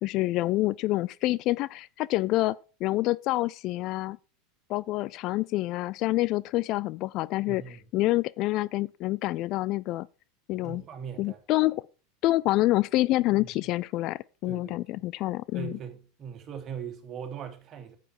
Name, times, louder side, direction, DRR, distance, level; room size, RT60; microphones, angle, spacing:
voice 1, 0.0-2.6 2.8-4.2 4.7-7.6 7.9-10.1 10.5-10.8 11.2-11.8 12.2-15.8, left 18 dB, 50° left, 0.4 m, -27 dB
voice 2, 7.5-7.8 10.6-11.4 13.4-13.5 14.5-15.0 15.5-18.0, right 7 dB, 40° right, 2.9 m, -40 dB
9.7 x 8.3 x 4.6 m
hypercardioid pair, 85°, 0 cm